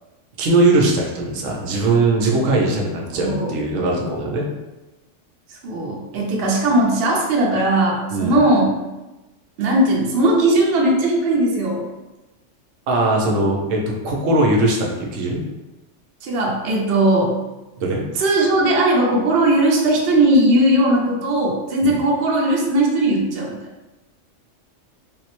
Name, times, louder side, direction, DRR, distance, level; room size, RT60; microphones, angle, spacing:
voice 1, 0.4-4.5 8.1-8.4 12.9-15.4 17.8-18.0 21.8-22.0, right 2 dB, 85° right, 0 dB, 1.0 m, -20 dB
voice 2, 3.2-3.5 5.5-8.8 9.6-11.8 16.2-17.3 18.2-23.6, right 1 dB, 60° right, -1 dB, 0.8 m, -18 dB
3.5 x 2.0 x 2.9 m, 1.1 s
omnidirectional pair, 1.3 m